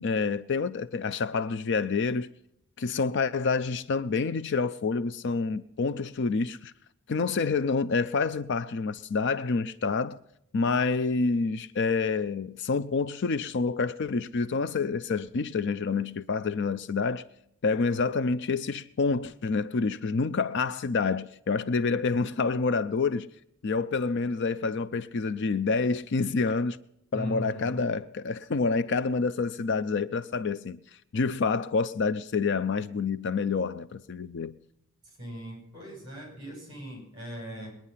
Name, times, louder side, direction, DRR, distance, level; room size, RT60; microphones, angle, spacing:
voice 1, 0.0-2.3 2.8-6.7 7.1-10.2 10.5-17.2 17.6-23.3 23.6-26.8 27.1-30.8 31.1-34.5, left 4 dB, 55° left, 0.5 m, -28 dB
voice 2, 27.1-27.8 35.0-37.7, right 1 dB, 20° right, 7.1 m, -39 dB
20.5 x 10.0 x 5.6 m
head